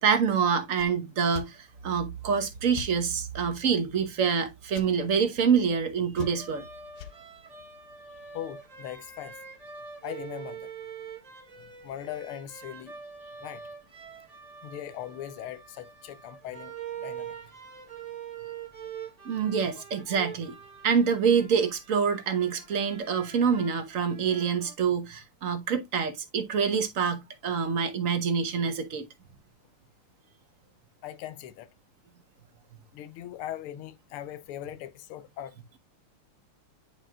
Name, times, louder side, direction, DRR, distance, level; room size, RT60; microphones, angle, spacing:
voice 1, 0.0-6.6 19.2-20.6 20.8-29.1, right 6 dB, 50° right, 1.1 m, -26 dB
sound 1, 0.7-0.9 1.3-1.5 2.7-2.9 4.7-4.9 6.1-6.6 6.9-7.1, left 8 dB, 60° left, 1.2 m, -40 dB
sound 2, 6.2-24.7, right 7 dB, 35° right, 0.6 m, -44 dB
voice 2, 8.3-9.4 10.0-10.7 11.6-12.9 13.4-13.6 14.6-16.7 17.0-17.3 19.7-19.8 31.0-31.7 32.9-35.5, left 11 dB, 90° left, 1.6 m, -40 dB
10.0 x 4.4 x 2.3 m
omnidirectional pair, 2.4 m